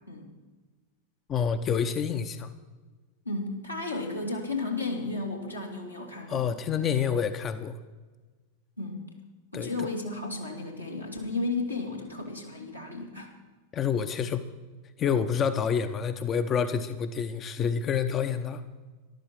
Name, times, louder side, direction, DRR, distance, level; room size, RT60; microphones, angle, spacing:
voice 1, 1.3-2.5 6.3-7.8 9.5-9.7 13.7-14.5 15.0-18.6, left 7 dB, 25° left, 10 dB, 0.7 m, -28 dB
voice 2, 3.2-6.5 8.8-9.0 9.5-13.3, left 3 dB, 90° left, -2 dB, 2.5 m, -33 dB
14.0 x 12.0 x 6.0 m, 1.3 s
figure-of-eight pair, 90°, 0 cm